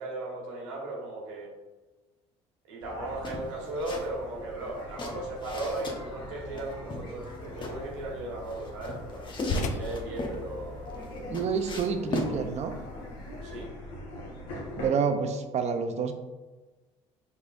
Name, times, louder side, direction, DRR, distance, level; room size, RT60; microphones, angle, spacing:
voice 1, 0.0-1.5 2.7-10.9 13.4-13.7, right 2 dB, 85° right, -2 dB, 1.2 m, -37 dB
sound 1, 2.8-14.9, left 1 dB, 75° left, 1.4 m, -42 dB
sound 2, 3.2-4.1 4.4-6.0 6.6-7.8 8.5-10.4 10.9-12.3, left 2 dB, 30° left, 0.9 m, -36 dB
sound 3, 7.4-13.7, left 2 dB, 50° left, 0.5 m, -40 dB
voice 2, 11.3-12.7 14.8-16.1, right 6 dB, 45° right, 8 dB, 0.6 m, -28 dB
4.8 x 4.0 x 2.5 m, 1.2 s
supercardioid pair, 75°, 16 cm